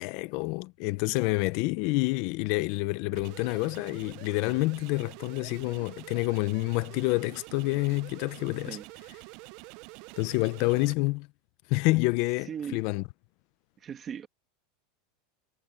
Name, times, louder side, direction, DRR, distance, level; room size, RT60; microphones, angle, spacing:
voice 1, 0.0-8.8 10.2-11.3 11.7-13.0, left 23 dB, 45° left, 0.5 m, -28 dB
sound 1, 3.1-10.9, right 23 dB, 45° right, 0.4 m, -47 dB
voice 2, 12.5-12.8 13.8-14.3, right 8 dB, 20° right, 1.7 m, -38 dB
supercardioid pair, 175°, 0 cm